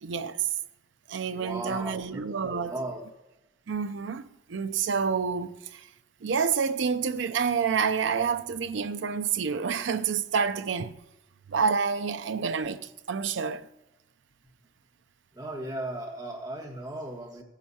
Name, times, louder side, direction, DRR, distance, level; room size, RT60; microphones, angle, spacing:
voice 1, 0.0-0.5 1.1-2.8 3.7-5.9 6.2-11.0 11.5-13.7, right 6 dB, 60° right, 0.5 m, -28 dB
voice 2, 1.3-3.0 15.3-17.4, right 1 dB, 20° right, 1.6 m, -36 dB
16.0 x 10.0 x 2.8 m
head